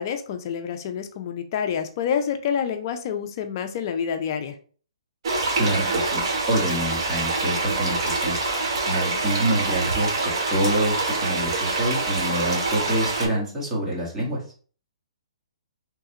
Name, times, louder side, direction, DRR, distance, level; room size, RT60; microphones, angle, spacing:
voice 1, 0.0-4.6, left 7 dB, 45° left, 7 dB, 0.5 m, -28 dB
sound 1, 5.2-13.3, right 3 dB, 55° right, 1.0 m, -25 dB
voice 2, 5.6-6.2 6.5-8.4 8.9-14.4, right 1 dB, 15° right, -6 dB, 1.3 m, -26 dB
3.2 x 2.3 x 2.8 m, 0.43 s
hypercardioid pair, 145°, 3 cm